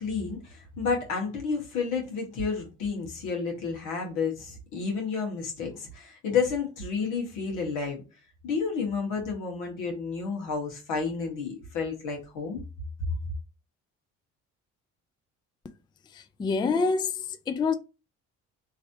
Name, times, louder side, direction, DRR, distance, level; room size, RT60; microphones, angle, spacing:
voice 1, 0.0-8.0 8.4-12.6, left 5 dB, 80° left, 1.5 m, -31 dB
voice 2, 16.1-17.7, left 4 dB, 15° left, 0.3 m, -27 dB
3.2 x 2.8 x 2.6 m
cardioid pair, 80°, 31 cm